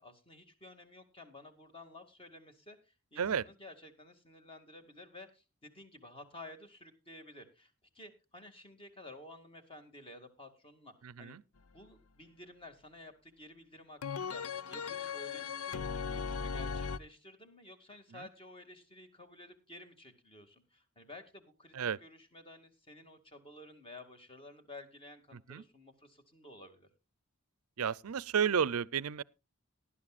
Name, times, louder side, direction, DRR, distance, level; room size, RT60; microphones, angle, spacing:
voice 1, 0.0-11.4 11.7-26.9, left 2 dB, 25° left, 2.2 m, -53 dB
voice 2, 11.0-11.4 21.8-22.0 25.5-25.6 27.8-29.2, right 7 dB, 90° right, 0.5 m, -32 dB
sound 1, 14.0-17.0, left 6 dB, 90° left, 0.6 m, -37 dB
18.5 x 11.5 x 2.4 m
head